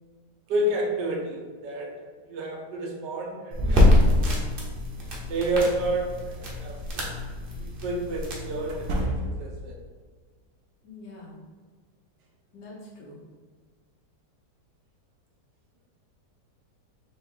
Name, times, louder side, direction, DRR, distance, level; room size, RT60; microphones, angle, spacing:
voice 1, 0.5-1.9 2.2-4.4 5.3-7.1 7.6-9.7, right 1 dB, 85° right, -1 dB, 1.5 m, -30 dB
sound 1, 3.5-9.0, left 1 dB, 45° right, 0.8 m, -25 dB
sound 2, 6.4-6.6 8.6-9.6, right 1 dB, 60° right, 1.1 m, -30 dB
voice 2, 10.8-11.4 12.5-13.2, left 2 dB, 85° left, -6 dB, 1.8 m, -44 dB
4.2 x 3.0 x 3.7 m, 1.5 s
omnidirectional pair, 1.8 m